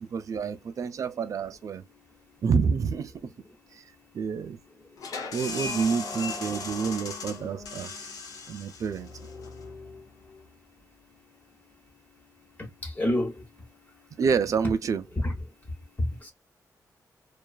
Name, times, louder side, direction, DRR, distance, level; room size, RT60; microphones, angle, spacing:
voice 1, 0.0-1.8 2.4-3.1 3.7-3.8 4.1-4.6 5.3-7.9 8.5-9.1 14.2-15.0, right 6 dB, 60° right, 0.4 m, -28 dB
sound 1, 5.0-10.4, left 4 dB, 75° left, 0.7 m, -37 dB
voice 2, 12.6-13.4 15.1-15.4 16.0-16.3, left 1 dB, 25° left, 0.9 m, -28 dB
2.4 x 2.3 x 2.3 m
wide cardioid pair, 120°, 6 cm